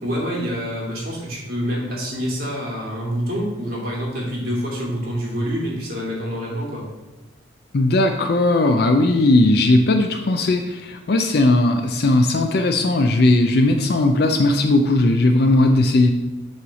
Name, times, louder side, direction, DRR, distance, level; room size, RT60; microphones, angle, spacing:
voice 1, 0.0-6.9, equal, 50° right, -4 dB, 2.2 m, -26 dB
voice 2, 7.7-16.1, left 2 dB, 55° left, 5 dB, 0.5 m, -17 dB
6.8 x 3.2 x 6.0 m, 1.1 s
head